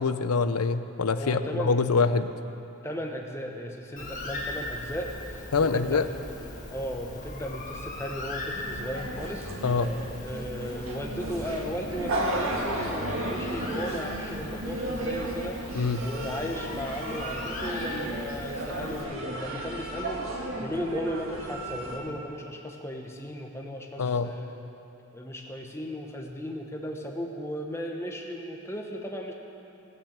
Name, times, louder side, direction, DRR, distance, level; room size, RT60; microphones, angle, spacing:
voice 1, 0.0-2.3 5.5-6.0 9.6-9.9 15.7-16.0 24.0-24.3, left 4 dB, 85° left, 11 dB, 0.6 m, -25 dB
voice 2, 1.2-1.8 2.8-9.5 10.2-24.6 25.1-29.3, equal, 10° left, 1 dB, 1.1 m, -36 dB
Bird, 4.0-19.0, left 2 dB, 35° left, 1.8 m, -40 dB
sound 1, 8.5-22.0, right 1 dB, 65° right, 1.7 m, -34 dB
18.0 x 6.9 x 8.0 m, 2.9 s
head